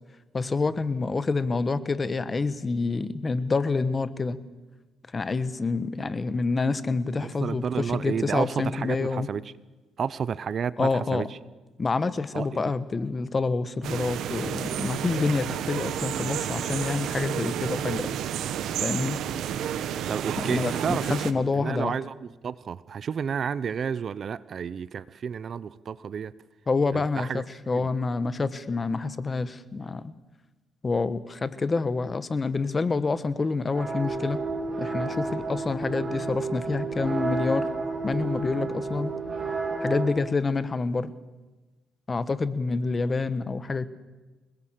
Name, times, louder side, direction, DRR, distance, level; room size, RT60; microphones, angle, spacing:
voice 1, 0.3-4.4 5.1-9.3 10.8-11.3 11.8-18.1 18.8-19.2 20.4-22.0 26.7-30.1 30.8-34.4 34.8-37.7 38.0-39.1 39.8-41.1 42.1-43.9, left 4 dB, 25° left, 14 dB, 1.2 m, -27 dB
voice 2, 7.2-9.4 10.0-11.3 12.3-12.5 20.1-26.3 26.9-27.4 27.7-27.9, right 7 dB, 45° right, 18 dB, 0.7 m, -31 dB
sound 1, 13.8-21.3, right 10 dB, 75° right, 1.4 m, -31 dB
sound 2, 33.7-40.1, right 3 dB, 25° right, 7.2 m, -31 dB
28.0 x 20.0 x 7.6 m, 1.2 s
cardioid pair, 115°, 0 cm